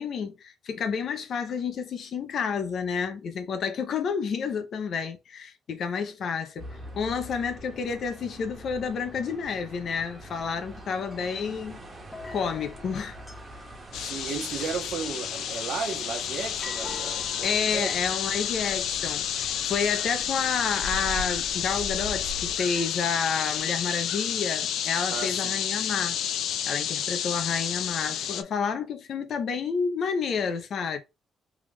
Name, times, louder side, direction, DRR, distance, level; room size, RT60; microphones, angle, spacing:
voice 1, 0.0-11.8 12.3-13.2 17.4-26.2 26.7-31.0, left 6 dB, 60° left, 0.7 m, -30 dB
sound 1, 6.6-22.6, right 1 dB, 25° right, 1.3 m, -43 dB
sound 2, 7.7-23.8, left 3 dB, 25° left, 0.9 m, -49 dB
sound 3, 13.9-28.4, left 9 dB, 80° left, 0.4 m, -30 dB
voice 2, 13.9-17.9 25.1-25.6, right 5 dB, 65° right, 1.1 m, -34 dB
3.5 x 2.5 x 3.4 m
cardioid pair, 115°, 0 cm